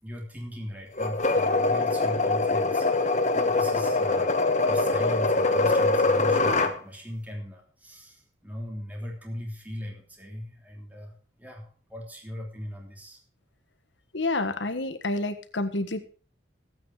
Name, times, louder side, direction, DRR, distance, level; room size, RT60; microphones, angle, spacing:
voice 1, 0.0-13.2, equal, 10° right, 0 dB, 3.2 m, -38 dB
sound 1, 1.0-6.8, left 3 dB, 40° left, 1.3 m, -23 dB
voice 2, 14.1-16.0, left 2 dB, 75° left, 10 dB, 1.5 m, -29 dB
15.5 x 9.2 x 4.9 m, 0.40 s
head